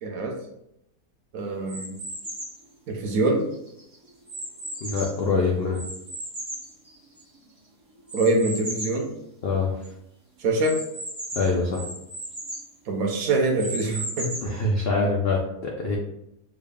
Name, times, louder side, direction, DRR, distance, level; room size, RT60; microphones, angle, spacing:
voice 1, 0.0-0.4 1.3-2.0 2.9-3.5 8.1-9.1 10.4-10.8 12.9-14.3, right 2 dB, 70° right, 1 dB, 1.0 m, -24 dB
sound 1, 1.7-2.6 3.3-5.3 5.7-7.4 8.1-9.0 9.5-9.6 9.8-9.9 10.6-12.7 13.3-14.6, right 1 dB, 40° right, 0.5 m, -36 dB
voice 2, 4.8-5.8 9.4-9.7 11.3-11.8 14.4-16.0, left 3 dB, 75° left, -1 dB, 0.5 m, -24 dB
3.6 x 2.3 x 3.4 m, 0.79 s
omnidirectional pair, 1.7 m